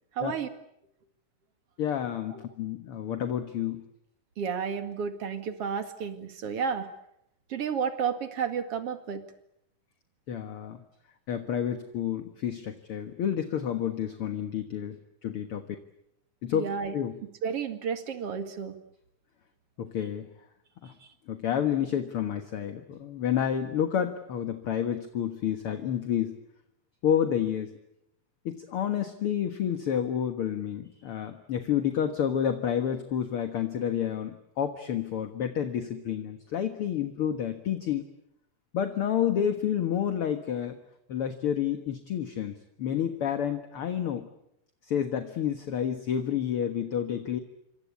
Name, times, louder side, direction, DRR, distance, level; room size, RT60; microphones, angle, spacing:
voice 1, 0.2-0.5 2.3-2.4 4.4-6.9 7.5-9.2 16.5-16.9 17.4-18.7, right 6 dB, 50° right, 8 dB, 2.7 m, -31 dB
voice 2, 1.8-3.8 10.3-10.8 11.3-15.0 15.2-15.6 16.4-17.2 19.8-20.3 20.8-20.9 21.3-26.4 27.0-27.7 28.5-38.0 38.7-40.8 41.1-42.5 42.8-44.3 44.8-47.4, left 9 dB, 50° left, 8 dB, 2.0 m, -29 dB
28.0 x 24.5 x 8.5 m, 0.79 s
omnidirectional pair, 3.8 m